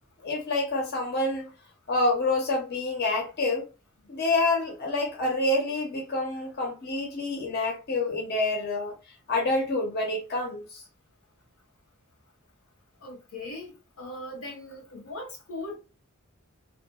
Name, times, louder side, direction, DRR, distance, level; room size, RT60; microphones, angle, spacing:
voice 1, 0.2-1.5 1.9-3.7 4.1-8.9 9.3-10.8, left 2 dB, 50° left, 0.8 m, -27 dB
voice 2, 13.0-15.8, left 2 dB, 90° left, 1.2 m, -39 dB
2.8 x 2.2 x 2.3 m
head